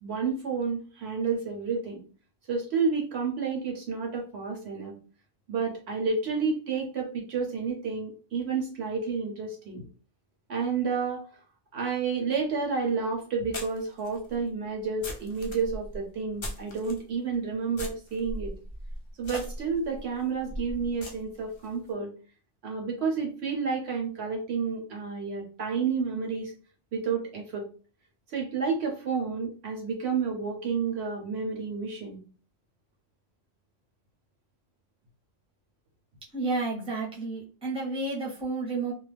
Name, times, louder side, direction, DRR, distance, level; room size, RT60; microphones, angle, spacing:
voice 1, 0.0-2.0 2.5-4.9 5.5-9.8 10.5-11.2 11.7-18.5 19.2-22.1 22.6-26.5 26.9-27.6 28.3-32.2, right 5 dB, 65° right, 1 dB, 0.9 m, -30 dB
sound 1, 12.4-12.5 13.5-17.0 17.7-21.7, equal, 50° left, 0.3 m, -39 dB
voice 2, 36.3-38.9, right 3 dB, 5° right, -4 dB, 0.7 m, -31 dB
2.4 x 2.0 x 3.2 m, 0.38 s
omnidirectional pair, 1.3 m